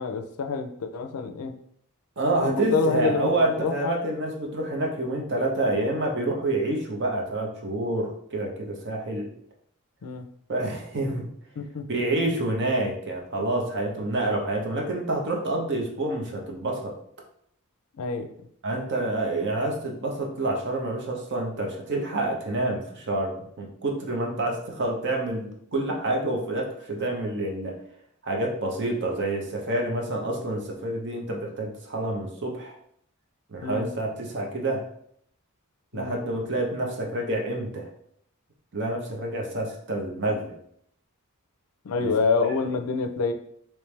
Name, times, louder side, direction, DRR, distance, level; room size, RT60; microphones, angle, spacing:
voice 1, 0.0-1.5 2.4-4.0 10.0-10.3 11.6-11.8 18.0-18.3 33.6-33.9 35.9-36.2 41.8-43.3, left 4 dB, 80° left, 7 dB, 0.4 m, -27 dB
voice 2, 2.2-9.3 10.5-11.3 11.9-17.0 18.6-27.8 28.2-32.8 33.5-34.8 35.9-37.9 38.7-40.5 42.0-42.1 42.6-42.7, right 2 dB, 55° right, 1 dB, 0.8 m, -28 dB
3.2 x 3.1 x 3.2 m, 0.69 s
head